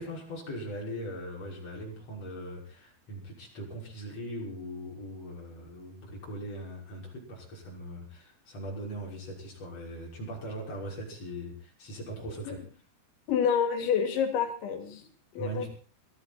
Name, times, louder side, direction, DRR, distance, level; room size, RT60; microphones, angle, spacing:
voice 1, 0.0-12.6 15.4-15.7, right 1 dB, 35° left, -2 dB, 7.0 m, -40 dB
voice 2, 13.3-15.1 15.3-15.7, left 7 dB, 85° left, 6 dB, 5.1 m, -28 dB
21.5 x 15.5 x 4.3 m, 0.38 s
omnidirectional pair, 5.2 m